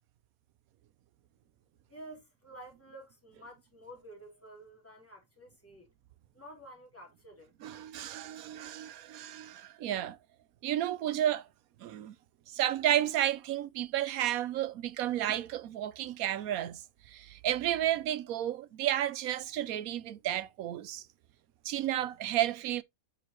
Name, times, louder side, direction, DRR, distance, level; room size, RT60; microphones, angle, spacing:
voice 1, 1.9-5.9 6.3-7.5, right 1 dB, 10° left, 3.0 m, -50 dB
voice 2, 7.6-10.2 10.6-11.5 11.8-12.2 12.5-21.1 21.6-22.8, right 12 dB, 80° right, 1.1 m, -32 dB
9.0 x 5.4 x 3.0 m
omnidirectional pair, 1.5 m